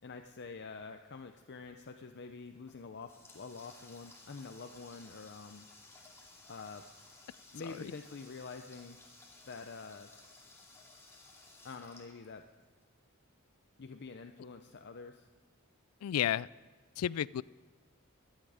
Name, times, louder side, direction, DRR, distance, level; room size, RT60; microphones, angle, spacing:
voice 1, 0.0-5.7 6.4-6.8 7.5-9.0 9.5-10.1 11.6-12.5 13.8-15.3, left 4 dB, 55° left, 6 dB, 0.6 m, -47 dB
Water tap faucet, 2.6-12.8, left 3 dB, 15° left, 2.4 m, -57 dB
voice 2, 16.0-16.5 17.0-17.4, left 10 dB, 90° left, 22 dB, 0.3 m, -32 dB
24.0 x 9.3 x 5.0 m, 1.4 s
head